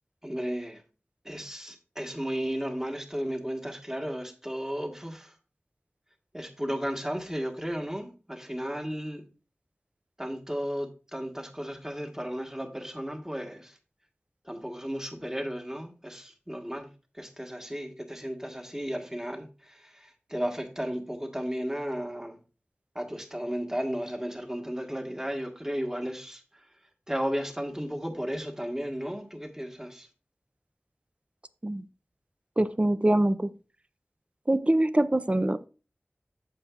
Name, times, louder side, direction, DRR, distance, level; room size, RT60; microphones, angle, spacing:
voice 1, 0.2-0.8 1.2-5.3 6.3-9.2 10.2-13.7 14.5-16.9 17.2-22.4 22.9-26.4 27.1-30.1, equal, 15° right, 1.4 m, -34 dB
voice 2, 32.6-33.5 34.5-35.6, right 1 dB, 30° right, 0.5 m, -24 dB
8.5 x 7.1 x 2.4 m
wide cardioid pair, 55°, 4 cm